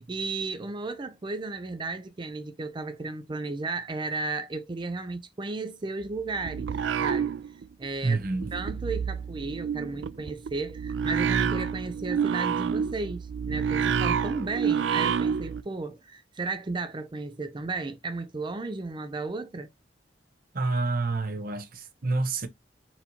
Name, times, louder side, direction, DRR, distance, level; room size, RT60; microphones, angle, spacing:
voice 1, 0.0-6.7 7.0-7.4 7.8-8.2 8.5-19.7, right 3 dB, 25° right, 0.4 m, -34 dB
sound 1, 6.0-7.9 8.2-15.6, right 7 dB, 85° right, 0.4 m, -28 dB
voice 2, 8.0-8.5 20.5-22.5, right 3 dB, 55° right, 0.9 m, -28 dB
4.3 x 4.1 x 2.8 m
head